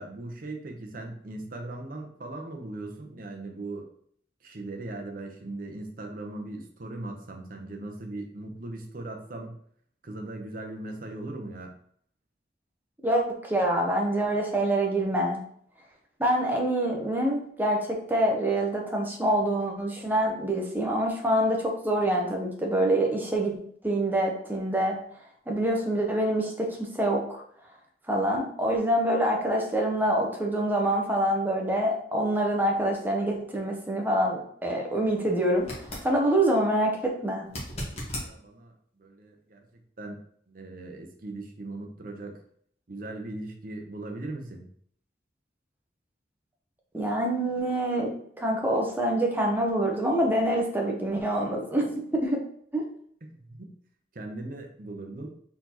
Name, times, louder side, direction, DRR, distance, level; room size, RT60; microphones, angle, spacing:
voice 1, 0.0-3.9 4.4-9.6 10.0-11.7 38.0-38.7 39.0-39.6 40.0-40.2 40.5-42.3 42.9-44.7 53.2-53.7 54.1-55.3, right 2 dB, 50° right, 3 dB, 0.8 m, -39 dB
voice 2, 13.0-15.4 16.2-23.6 23.8-25.0 25.5-27.4 28.1-35.7 36.0-37.5 46.9-48.1 48.4-52.4 52.7-52.8, right 1 dB, 10° right, 0 dB, 0.8 m, -26 dB
sound 1, 35.6-36.1 37.4-38.3 41.3-41.4, equal, 35° left, 1.4 m, -36 dB
4.2 x 4.0 x 2.9 m, 0.63 s
head